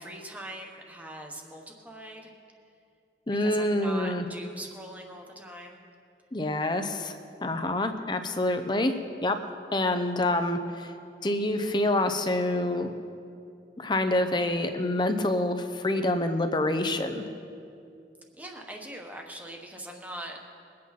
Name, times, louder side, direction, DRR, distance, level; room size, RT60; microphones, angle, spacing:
voice 1, 0.0-2.3 3.3-5.8 18.4-20.5, right 1 dB, 10° right, 1 dB, 1.2 m, -42 dB
voice 2, 3.3-4.2 6.3-7.1 7.4-8.9 9.2-9.4 9.7-10.9 11.2-12.9 13.8-17.2, left 1 dB, 25° left, 7 dB, 0.7 m, -27 dB
22.0 x 8.6 x 4.2 m, 2.5 s
head